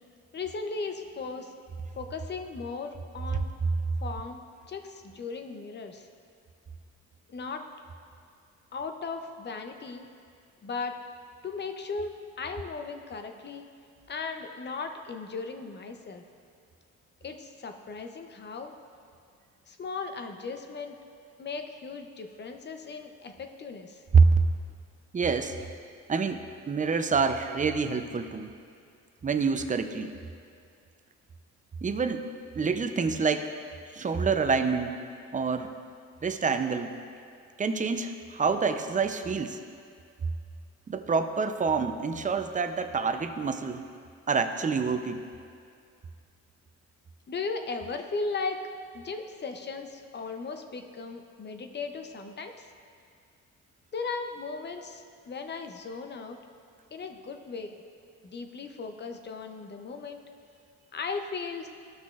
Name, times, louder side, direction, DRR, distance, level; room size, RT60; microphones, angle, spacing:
voice 1, 0.3-1.5 2.0-3.5 4.0-4.4 4.7-6.1 7.3-7.6 8.7-10.1 10.6-10.9 11.4-13.7 14.1-16.2 17.2-18.7 19.7-21.0 21.4-24.0 47.3-48.7 48.9-52.7 53.9-56.4 56.9-57.8 58.2-60.2 60.9-61.7, left 4 dB, 35° left, 5 dB, 0.7 m, -37 dB
voice 2, 25.1-25.5 26.1-28.5 29.2-30.1 31.8-32.2 32.6-33.5 33.9-35.0 35.3-35.7 36.2-37.0 37.6-39.6 40.9-43.8 44.3-45.3, right 5 dB, 25° right, 7 dB, 0.6 m, -26 dB
15.0 x 6.1 x 2.4 m, 2.3 s
cardioid pair, 90°, 30 cm